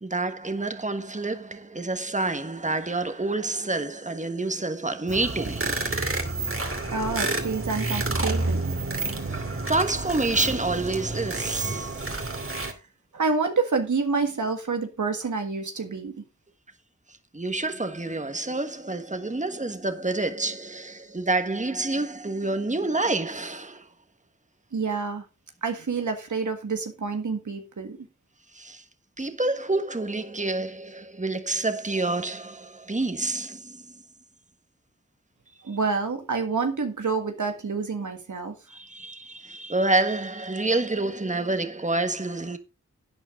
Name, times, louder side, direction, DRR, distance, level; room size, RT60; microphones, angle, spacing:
voice 1, 0.0-6.1 9.2-12.2 17.1-23.9 28.5-28.8 29.2-34.0 38.7-42.6, right 2 dB, 25° right, 1.5 m, -28 dB
sound 1, 5.1-12.7, right 2 dB, 45° right, 2.5 m, -29 dB
voice 2, 6.9-8.8 12.6-12.8 13.1-16.2 24.7-25.3 25.6-28.1 35.6-38.6, right 4 dB, 90° right, 1.8 m, -28 dB
12.0 x 8.9 x 3.7 m
wide cardioid pair, 45°, 29 cm